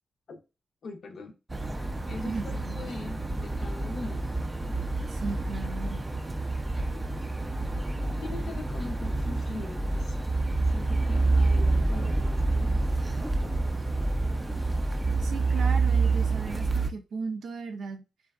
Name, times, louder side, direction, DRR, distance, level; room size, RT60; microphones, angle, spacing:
voice 1, 0.8-1.3 2.1-4.3 4.6-4.8 6.8-7.1 8.0-10.2 10.7-13.7, left 3 dB, 65° left, 0.5 m, -42 dB
sound 1, 1.5-16.9, right 3 dB, 20° right, 0.4 m, -28 dB
voice 2, 2.2-2.8 5.1-6.1 15.2-18.0, right 4 dB, 75° right, 0.5 m, -36 dB
2.6 x 2.3 x 2.3 m
cardioid pair, 60°, 0 cm